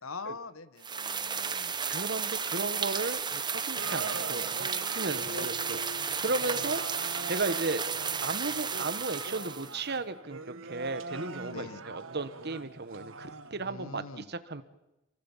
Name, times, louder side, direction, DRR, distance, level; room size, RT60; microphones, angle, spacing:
voice 1, 0.0-1.8 5.1-5.5 11.5-11.8 13.6-14.2, left 4 dB, 80° left, 13 dB, 1.4 m, -43 dB
sound 1, 0.8-9.8, right 6 dB, 20° right, 1.0 m, -33 dB
voice 2, 1.9-4.7 4.9-6.8 7.2-7.8 8.2-14.6, right 3 dB, 50° right, 12 dB, 1.4 m, -35 dB
sound 2, 3.7-13.7, right 3 dB, 70° right, 1.6 m, -42 dB
28.5 x 23.0 x 7.4 m, 0.98 s
head